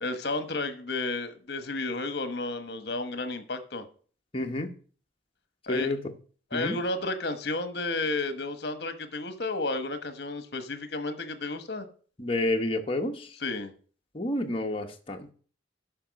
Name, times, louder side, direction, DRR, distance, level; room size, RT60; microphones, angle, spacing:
voice 1, 0.0-3.9 5.7-5.9 6.5-11.9 13.4-13.7, left 2 dB, 60° left, 1.1 m, -32 dB
voice 2, 4.3-4.7 5.7-6.0 6.5-6.8 12.2-13.3 14.1-15.3, left 1 dB, 30° left, 1.0 m, -29 dB
8.7 x 5.8 x 6.2 m
head